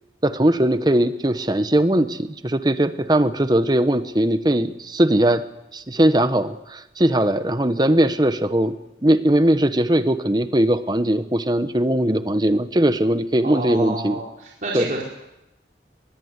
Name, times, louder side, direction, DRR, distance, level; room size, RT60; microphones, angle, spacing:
voice 1, 0.2-5.4 5.7-8.7 9.0-14.2 14.7-14.9, right 1 dB, 25° right, 11 dB, 1.0 m, -19 dB
voice 2, 13.4-15.0, right 2 dB, 45° right, -4 dB, 4.5 m, -29 dB
25.0 x 21.5 x 8.2 m, 0.91 s
head